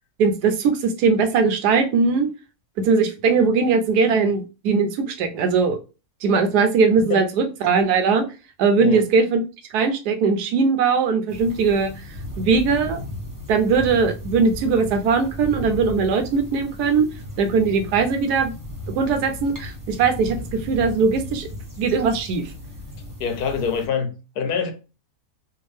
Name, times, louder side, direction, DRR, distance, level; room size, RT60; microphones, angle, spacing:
voice 1, 0.2-2.3 2.8-5.8 6.2-8.3 8.6-9.4 9.7-11.9 12.4-13.0 13.5-17.1 17.4-18.5 18.9-21.5 21.8-22.4, right 5 dB, 85° right, 1.2 m, -20 dB
sound 1, 11.3-23.9, left 1 dB, 15° right, 0.7 m, -36 dB
voice 2, 23.2-24.7, left 6 dB, 80° left, 1.2 m, -25 dB
3.5 x 2.5 x 3.1 m
omnidirectional pair, 1.6 m